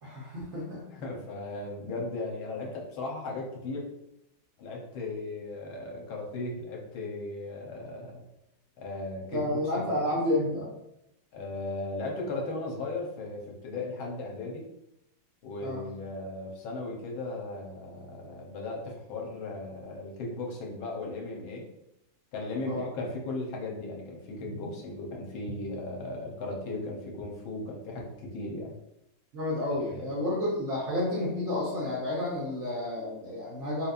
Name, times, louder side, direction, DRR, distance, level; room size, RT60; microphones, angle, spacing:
voice 1, 0.0-0.8 9.3-10.7 15.6-15.8 22.7-22.9 29.3-33.9, left 1 dB, 60° right, -6 dB, 0.7 m, -30 dB
voice 2, 0.9-3.8 4.6-8.2 8.8-9.5 9.7-9.9 11.3-14.6 15.4-21.7 22.3-28.7 29.7-30.2, left 2 dB, 80° left, 0 dB, 1.6 m, -37 dB
4.4 x 2.8 x 2.5 m, 0.84 s
omnidirectional pair, 2.2 m